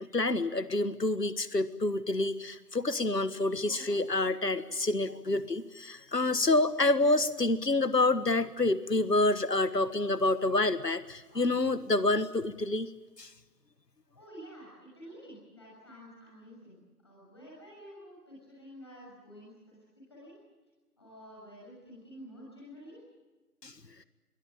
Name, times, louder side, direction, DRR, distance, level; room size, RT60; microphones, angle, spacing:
voice 1, 0.1-12.9 13.2-13.3 23.6-23.7, left 2 dB, 80° left, 14 dB, 1.6 m, -28 dB
voice 2, 14.1-19.8 20.1-20.3 21.0-23.0, equal, 15° left, -6 dB, 6.6 m, -50 dB
23.0 x 21.0 x 9.0 m, 1.2 s
figure-of-eight pair, 175°, 48 cm